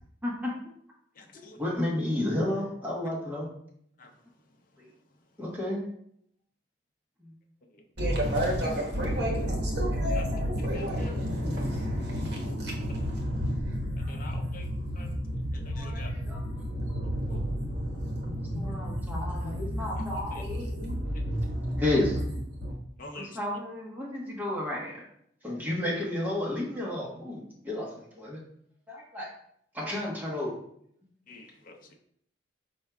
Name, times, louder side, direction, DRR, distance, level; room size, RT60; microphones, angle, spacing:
voice 1, 0.2-0.5 1.6-3.5 4.8-4.9 5.4-5.8 7.2-7.3 15.7-16.6 18.2-20.7 21.8-22.2 23.1-25.0 25.4-28.4 28.9-29.3 29.7-30.6, left 1 dB, 10° right, 1.1 m, -32 dB
voice 2, 8.0-22.2 22.5-22.7, equal, 65° right, 1.3 m, -31 dB
voice 3, 14.1-14.6 15.0-15.1 15.8-16.1 23.0-23.3 31.3-31.9, left 2 dB, 50° left, 0.6 m, -45 dB
4.5 x 4.4 x 2.3 m
head